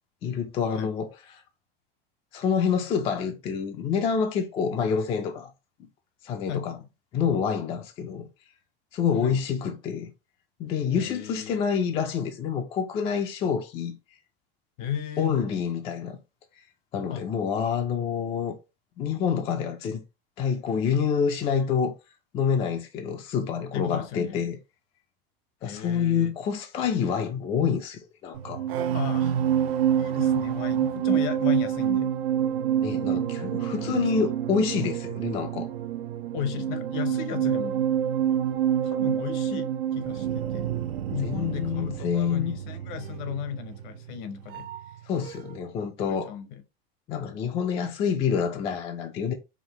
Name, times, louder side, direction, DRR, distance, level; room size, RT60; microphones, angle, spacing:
voice 1, 0.2-1.4 2.3-5.5 6.2-6.8 7.1-8.3 8.9-10.1 10.6-14.0 15.2-16.2 16.9-18.5 19.0-20.0 20.4-21.9 22.3-24.6 25.6-28.6 32.8-35.7 41.2-42.6 45.1-46.4 47.1-49.3, left 7 dB, 20° left, 0.3 m, -27 dB
voice 2, 6.5-6.9 9.2-9.4 10.9-11.6 14.8-15.4 17.1-17.2 23.7-24.5 25.6-26.3 28.9-29.4 30.0-32.1 33.1-34.3 36.3-37.9 38.8-40.7 41.1-44.7 46.1-46.5, left 8 dB, 55° left, 0.8 m, -35 dB
sound 1, 28.3-45.0 45.3-45.6, right 10 dB, 90° right, 0.7 m, -27 dB
5.0 x 2.5 x 2.9 m
supercardioid pair, 155°, 29 cm